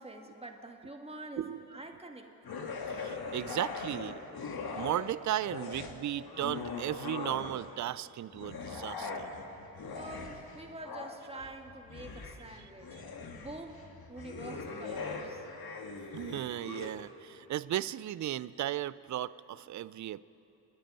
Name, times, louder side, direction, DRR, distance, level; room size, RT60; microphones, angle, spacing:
voice 1, 0.0-2.3 9.9-12.9 13.3-13.8 14.1-15.4, right 2 dB, 15° right, 4 dB, 1.7 m, -46 dB
voice 2, 1.4-1.8 2.9-4.2 4.8-9.3 16.1-20.2, right 12 dB, 45° right, 19 dB, 0.4 m, -36 dB
sound 1, 2.4-5.1 5.4-7.8 8.3-16.9, left 4 dB, 55° left, 1.6 m, -41 dB
26.0 x 10.0 x 5.3 m, 2.9 s
cardioid pair, 55°, 43 cm